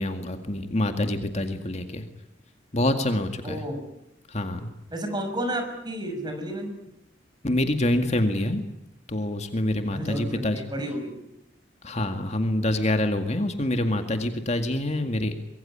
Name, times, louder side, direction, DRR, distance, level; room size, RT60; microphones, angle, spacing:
voice 1, 0.0-2.0 2.7-3.6 4.3-4.6 7.4-8.6 9.1-10.6 11.8-15.4, left 1 dB, 35° left, 6 dB, 2.0 m, -26 dB
voice 2, 3.4-3.8 4.9-6.7 9.9-11.2, right 1 dB, 25° right, 6 dB, 6.1 m, -31 dB
25.0 x 22.5 x 10.0 m, 0.84 s
head